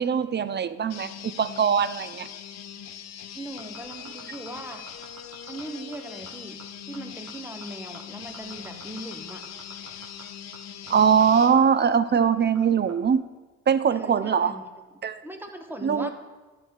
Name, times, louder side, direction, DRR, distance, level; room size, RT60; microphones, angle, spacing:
voice 1, 0.0-2.3 10.9-13.2 13.7-14.6 15.0-15.2 15.8-16.1, right 7 dB, 35° right, 15 dB, 0.5 m, -22 dB
sound 1, 0.9-11.6, left 9 dB, 60° left, 0.8 m, -41 dB
voice 2, 3.3-4.8 5.5-9.4 13.9-14.7 14.9-16.1, right 1 dB, 5° right, 5 dB, 1.2 m, -39 dB
sound 2, 3.4-13.1, right 5 dB, 60° right, 1.2 m, -49 dB
11.5 x 6.8 x 4.6 m, 1.2 s
cardioid pair, 90°, 30 cm